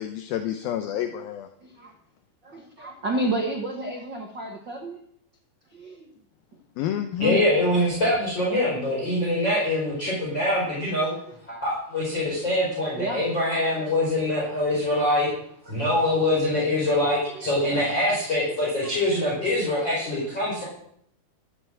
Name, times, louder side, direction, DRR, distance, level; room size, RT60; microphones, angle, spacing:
voice 1, 0.0-1.5 6.8-7.4, left 11 dB, 75° left, 7 dB, 2.2 m, -29 dB
voice 2, 1.6-1.9 2.4-5.0 5.7-6.1 6.5-6.6 12.9-13.2 15.6-16.1 17.3-17.9 18.7-19.0 20.4-20.5, right 2 dB, 90° right, 1 dB, 0.9 m, -32 dB
voice 3, 7.2-11.1 11.5-15.3 15.7-20.6, left 1 dB, 25° left, -6 dB, 5.3 m, -24 dB
14.0 x 9.2 x 7.6 m, 0.68 s
omnidirectional pair, 5.1 m